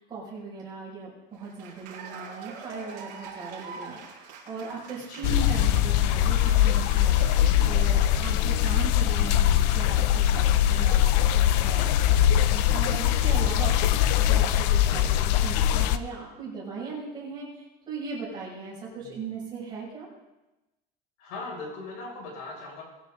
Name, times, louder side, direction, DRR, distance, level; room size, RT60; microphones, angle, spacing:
voice 1, 0.0-20.1, right 4 dB, 20° right, -6 dB, 6.7 m, -38 dB
Cheering / Applause, 1.3-8.9, right 5 dB, 50° right, 5.5 m, -45 dB
voice 2, 5.1-5.4 19.0-19.2 21.2-22.8, left 3 dB, 65° left, -2 dB, 6.7 m, -39 dB
sound 1, 5.2-16.0, left 11 dB, 80° left, 0.8 m, -22 dB
22.5 x 11.0 x 4.0 m, 1.0 s
cardioid pair, 170°, 20 cm